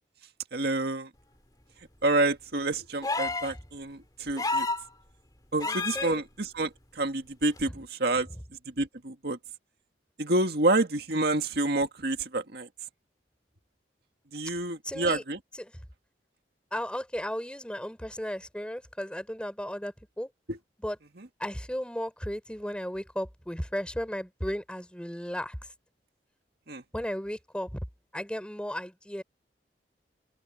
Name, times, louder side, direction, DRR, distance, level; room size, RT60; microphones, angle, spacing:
voice 1, 0.5-1.1 2.0-4.7 5.5-6.7 7.0-8.3 8.8-9.4 10.2-12.7 14.3-15.4 26.7-26.8, right 2 dB, 60° right, 2.0 m, -28 dB
sound 1, 3.0-3.6 4.4-4.9 5.6-6.1 7.6-7.7, left 3 dB, 20° left, 2.2 m, -29 dB
voice 2, 5.6-6.2 7.7-7.8 8.2-8.4 14.8-15.2 15.5-15.7 16.7-20.3 20.8-21.0 21.4-25.7 26.9-27.8 28.1-29.2, equal, 5° left, 3.8 m, -35 dB
open air
head